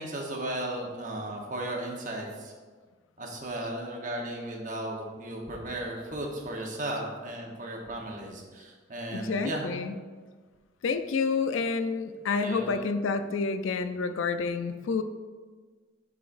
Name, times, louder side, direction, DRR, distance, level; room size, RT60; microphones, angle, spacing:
voice 1, 0.0-2.5 3.2-9.7 12.4-12.7, right 1 dB, 40° right, 0 dB, 1.0 m, -35 dB
voice 2, 9.1-10.0 10.8-15.0, left 4 dB, 80° left, 9 dB, 0.4 m, -29 dB
11.0 x 4.0 x 2.5 m, 1.5 s
head